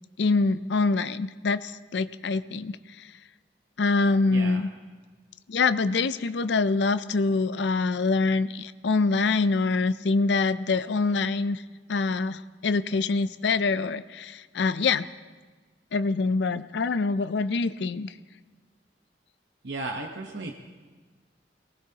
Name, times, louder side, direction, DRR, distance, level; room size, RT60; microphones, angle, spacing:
voice 1, 0.2-3.1 3.8-4.7 5.5-11.6 11.9-15.1 15.9-18.1, left 3 dB, 70° left, 13 dB, 0.5 m, -25 dB
voice 2, 4.3-4.6 19.6-20.5, right 2 dB, 70° right, 2 dB, 1.0 m, -34 dB
23.5 x 19.0 x 2.9 m, 1.4 s
head